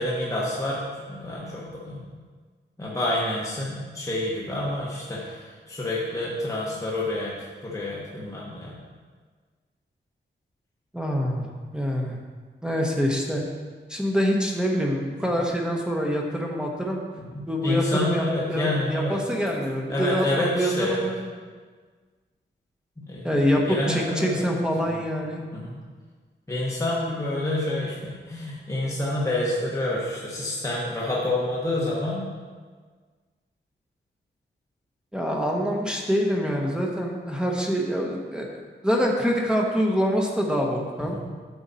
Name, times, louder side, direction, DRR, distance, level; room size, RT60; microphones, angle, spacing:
voice 1, 0.0-2.0 2.8-7.3 7.6-8.8 17.2-19.2 19.9-21.1 23.0-23.4 23.7-24.5 25.5-25.7 26.5-32.3, left 1 dB, 15° left, -5 dB, 1.3 m, -28 dB
voice 2, 10.9-11.4 11.7-12.2 12.6-13.4 13.9-17.0 17.5-21.3 23.2-25.4 35.1-41.2, equal, 5° right, -1 dB, 1.0 m, -25 dB
9.1 x 6.9 x 4.2 m, 1.5 s
wide cardioid pair, 140°, 20 cm